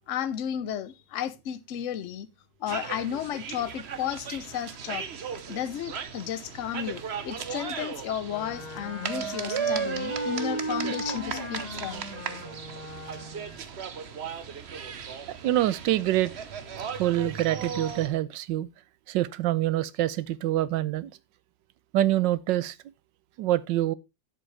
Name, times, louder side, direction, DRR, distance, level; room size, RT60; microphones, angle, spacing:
voice 1, 0.1-2.3 2.6-5.0 5.5-12.0, left 9 dB, 55° left, 0.9 m, -33 dB
sound 1, 2.7-18.1, right 7 dB, 45° right, 0.9 m, -36 dB
Wind instrument woodwind instrument, 8.3-13.6, equal, 20° left, 1.8 m, -37 dB
voice 2, 15.4-16.3 17.0-18.7 19.1-21.1 21.9-22.7 23.4-23.9, right 14 dB, 80° right, 1.3 m, -25 dB
11.0 x 7.7 x 3.2 m
omnidirectional pair, 2.0 m